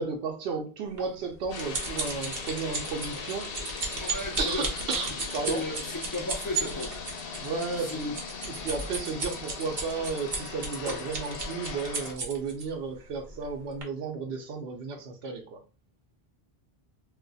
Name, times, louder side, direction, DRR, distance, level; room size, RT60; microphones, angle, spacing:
voice 1, 0.0-4.1 4.4-5.6 7.4-8.2 8.4-15.6, right 4 dB, 80° right, 0.8 m, -33 dB
sound 1, 1.0-12.6 13.3-13.5 13.8-13.9, right 3 dB, 55° right, 1.0 m, -34 dB
sound 2, 1.5-12.1, left 5 dB, 70° left, 0.8 m, -39 dB
voice 2, 4.0-4.7 5.5-6.9 7.9-8.0, left 1 dB, 30° left, 0.4 m, -34 dB
2.4 x 2.3 x 3.8 m
omnidirectional pair, 1.0 m